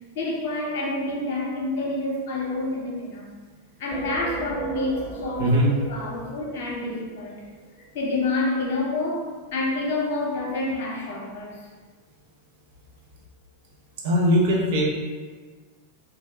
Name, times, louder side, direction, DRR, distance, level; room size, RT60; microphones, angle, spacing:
voice 1, 0.1-3.3 3.8-7.3 7.9-11.7, left 2 dB, 50° left, -2 dB, 0.8 m, -28 dB
sound 1, 3.9-7.5, right 1 dB, 25° left, 0.6 m, -35 dB
voice 2, 5.4-5.7 14.0-14.8, equal, 50° right, -2 dB, 0.7 m, -20 dB
3.1 x 2.3 x 3.4 m, 1.4 s
figure-of-eight pair, 90°, 0 cm